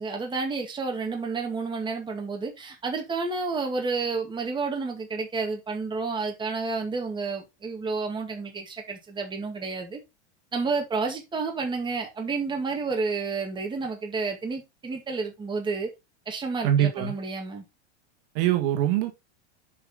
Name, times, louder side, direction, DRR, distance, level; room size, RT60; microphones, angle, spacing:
voice 1, 0.0-10.0 10.5-15.9 16.3-17.6, right 4 dB, 15° right, 2.1 m, -30 dB
voice 2, 16.6-17.1 18.3-19.1, right 11 dB, 55° right, 1.7 m, -23 dB
7.7 x 5.1 x 3.8 m
supercardioid pair, 140°, 34 cm